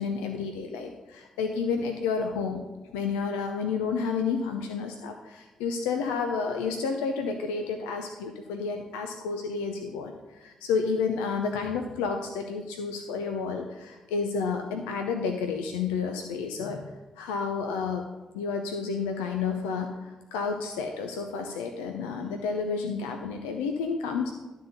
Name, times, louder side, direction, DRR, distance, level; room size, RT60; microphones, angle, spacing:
voice 1, 0.0-2.6 2.9-18.1 18.3-24.3, left 5 dB, 85° left, 4 dB, 0.6 m, -30 dB
11.5 x 4.1 x 6.6 m, 1.1 s
hypercardioid pair, 40°, 2 cm